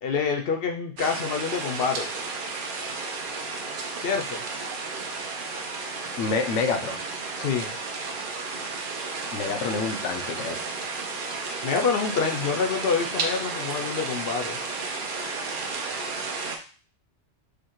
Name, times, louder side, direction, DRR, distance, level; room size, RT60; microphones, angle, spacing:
voice 1, 0.0-2.1 4.0-4.4 7.4-7.8 11.6-14.6, left 5 dB, 65° left, 3 dB, 0.7 m, -27 dB
sound 1, 1.0-16.6, right 4 dB, 55° right, 0.7 m, -33 dB
voice 2, 6.2-7.0 9.3-10.6, left 4 dB, 85° left, 6 dB, 0.9 m, -27 dB
5.0 x 2.2 x 2.9 m, 0.39 s
omnidirectional pair, 1.2 m